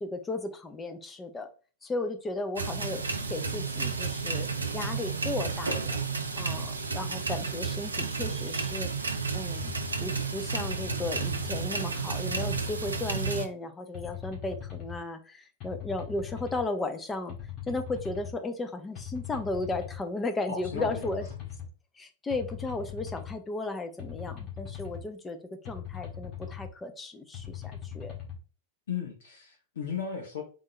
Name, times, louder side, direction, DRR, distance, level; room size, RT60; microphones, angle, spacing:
voice 1, 0.0-1.5 1.8-3.0 3.3-4.5 4.7-6.0 6.4-8.9 9.3-9.7 10.0-17.3 17.7-21.2 22.0-25.4 25.7-28.1, left 2 dB, 15° left, 7 dB, 0.7 m, -35 dB
sound 1, 2.6-13.5, right 4 dB, 75° right, 0.6 m, -32 dB
sound 2, 9.5-9.9 10.6-11.6 12.3-13.3 13.9-15.0 15.6-16.6 17.3-18.3 19.0-20.0 20.6-21.7 22.3-23.3 24.0-25.0 25.7-26.7 27.3-28.4, left 10 dB, 40° left, 1.8 m, -40 dB
voice 2, 20.5-21.1 28.9-30.4, left 6 dB, 60° left, 1 dB, 0.8 m, -35 dB
3.8 x 3.7 x 3.2 m, 0.37 s
figure-of-eight pair, 90°, 0 cm